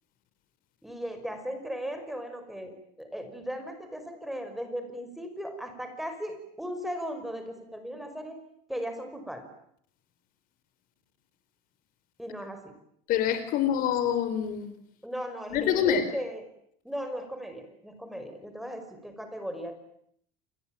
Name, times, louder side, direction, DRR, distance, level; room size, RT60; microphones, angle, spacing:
voice 1, 0.8-8.4 8.7-9.5 12.2-12.7 15.0-16.4 16.8-19.7, equal, ahead, 7 dB, 5.7 m, -37 dB
voice 2, 13.1-14.8 15.5-16.1, left 9 dB, 50° left, 11 dB, 4.1 m, -26 dB
29.5 x 22.0 x 9.1 m, 0.69 s
cardioid pair, 155°, 19 cm